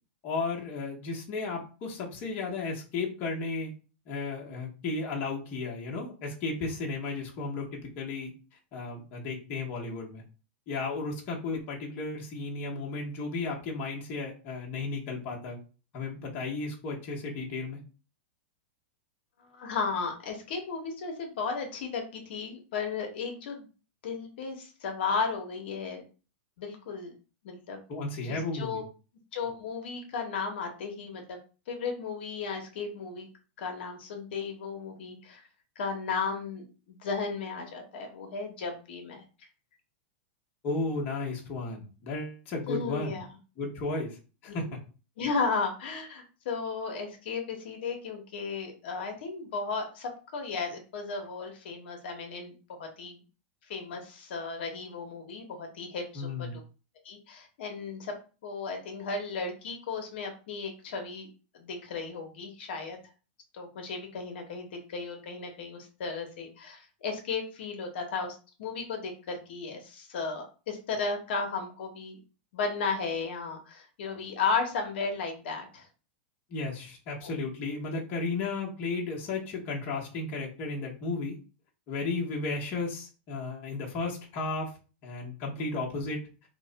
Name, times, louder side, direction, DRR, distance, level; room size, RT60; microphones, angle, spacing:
voice 1, 0.2-3.7 4.1-8.3 8.7-10.2 10.7-15.6 15.9-17.8 27.9-28.8 40.6-43.2 43.6-44.6 56.1-56.6 76.5-81.4 81.9-84.7 85.0-86.2, left 3 dB, 35° left, -2 dB, 0.9 m, -34 dB
voice 2, 19.5-23.7 24.0-26.0 26.6-27.1 27.4-27.8 28.2-28.8 29.3-31.4 31.7-33.3 33.6-35.4 35.8-39.2 42.7-43.3 45.2-53.2 53.7-56.6 57.0-58.1 58.4-61.3 61.5-63.0 63.5-72.2 72.5-75.9 77.2-77.3, left 4 dB, 65° left, 3 dB, 0.9 m, -34 dB
3.0 x 2.1 x 3.8 m, 0.35 s
supercardioid pair, 150°, 6 cm